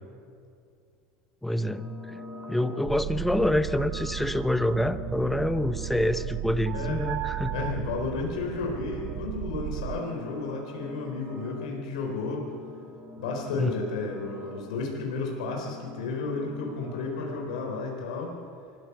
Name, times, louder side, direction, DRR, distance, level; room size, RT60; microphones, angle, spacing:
voice 1, 1.4-7.7 13.6-13.7, left 1 dB, 5° left, 12 dB, 0.9 m, -27 dB
sound 1, 1.5-17.6, left 2 dB, 20° right, 4.7 m, -46 dB
sound 2, 2.8-10.0, right 15 dB, 55° right, 0.5 m, -35 dB
voice 2, 7.5-12.5 13.2-18.4, left 3 dB, 90° left, 1 dB, 4.0 m, -32 dB
25.0 x 15.0 x 7.0 m, 2.4 s
supercardioid pair, 120°, 4 cm